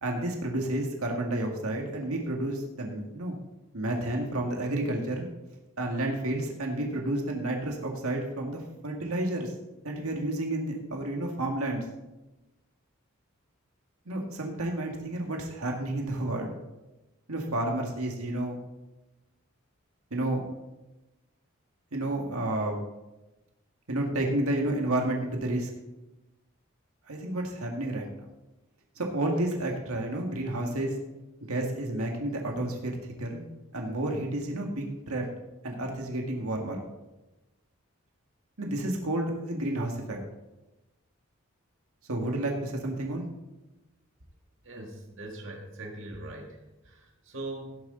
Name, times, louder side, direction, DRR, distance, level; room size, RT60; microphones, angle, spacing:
voice 1, 0.0-3.4 3.7-5.3 5.8-9.5 9.8-11.8 14.1-16.5 17.3-18.6 20.1-20.4 21.9-22.8 23.9-25.7 27.1-28.3 29.0-30.9 31.5-33.4 33.7-35.3 35.6-36.8 38.6-40.2 42.1-43.3, right 1 dB, 90° right, 1 dB, 1.9 m, -31 dB
voice 2, 44.6-47.8, right 2 dB, 60° right, 0 dB, 1.9 m, -41 dB
17.5 x 8.0 x 3.8 m, 1.0 s
head